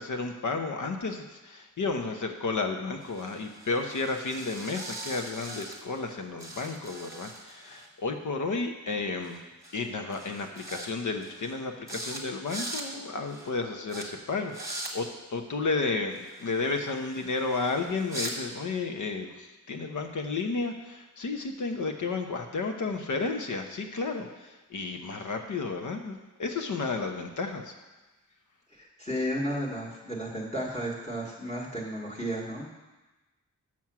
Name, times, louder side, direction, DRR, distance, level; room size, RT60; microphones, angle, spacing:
voice 1, 0.0-9.5 9.7-27.7, left 3 dB, 75° left, 4 dB, 0.9 m, -32 dB
sound 1, 3.0-6.1 6.4-7.9 9.2-9.4 9.6-9.9 10.1-10.9 11.2-11.6 11.9-12.2 12.4-12.9 13.3-13.5 13.9-14.0 14.5-14.9 16.1-18.3, right 1 dB, 10° right, 1.1 m, -41 dB
voice 2, 28.7-32.7, equal, 20° left, -3 dB, 1.4 m, -33 dB
7.3 x 6.1 x 6.0 m, 1.1 s
wide cardioid pair, 150°, 31 cm